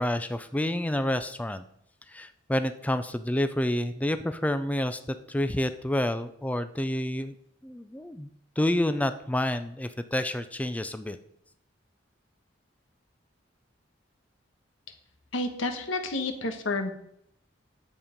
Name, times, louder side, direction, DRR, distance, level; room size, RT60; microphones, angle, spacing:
voice 1, 0.0-1.6 2.1-5.0 5.3-7.3 7.6-8.3 8.6-11.2, left 1 dB, 10° left, 10 dB, 0.4 m, -28 dB
voice 2, 15.3-16.9, left 2 dB, 90° left, 6 dB, 1.4 m, -30 dB
9.7 x 7.3 x 5.2 m, 0.73 s
head